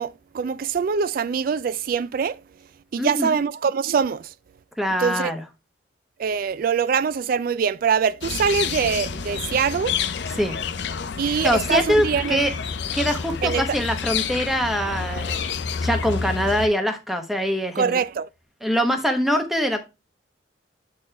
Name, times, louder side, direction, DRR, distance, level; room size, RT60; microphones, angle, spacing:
voice 1, 0.0-2.4 2.9-4.3 5.0-5.3 6.2-10.0 11.2-12.4 13.4-13.7 17.8-18.3, right 6 dB, 50° right, 0.3 m, -23 dB
voice 2, 3.0-3.4 4.8-5.4 10.4-10.6 11.4-12.5 12.9-15.4 15.8-18.0 18.6-19.8, equal, ahead, 0.9 m, -23 dB
sound 1, 8.2-16.7, left 6 dB, 65° left, 0.5 m, -29 dB
7.7 x 4.2 x 3.2 m
head